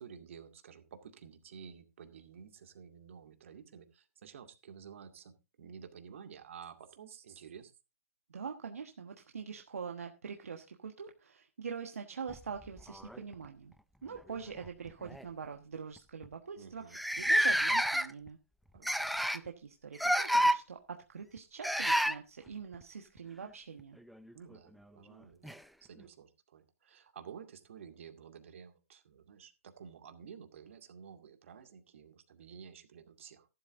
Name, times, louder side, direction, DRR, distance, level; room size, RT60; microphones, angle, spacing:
voice 1, 0.0-7.7 16.6-17.0 18.7-19.1 24.3-33.5, right 7 dB, 60° right, 6 dB, 2.2 m, -52 dB
voice 2, 8.3-13.7 14.0-18.4 19.3-24.0, right 6 dB, 75° right, 3 dB, 1.3 m, -44 dB
sound 1, 12.3-13.5 14.5-14.7 15.1-15.2 16.0-16.1 16.2-16.3 16.9-18.3 18.8-19.5 20.0-20.6 21.6-22.2 24.3-24.4 25.4-25.5, equal, ahead, 0.5 m, -29 dB
14.0 x 12.0 x 2.6 m, 0.28 s
hypercardioid pair, 130°, 8 cm